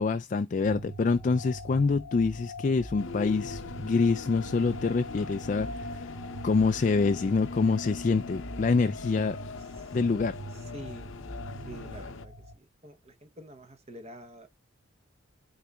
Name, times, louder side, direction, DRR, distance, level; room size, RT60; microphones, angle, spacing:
voice 1, 0.0-6.1 6.4-9.4 9.9-10.4, left 4 dB, 35° left, 0.3 m, -26 dB
sound 1, 0.6-12.5, right 1 dB, 55° right, 2.3 m, -44 dB
sound 2, 3.0-12.2, left 3 dB, 65° left, 0.7 m, -40 dB
voice 2, 10.5-11.1 11.7-14.5, right 1 dB, 30° right, 0.8 m, -47 dB
11.5 x 4.0 x 2.3 m
head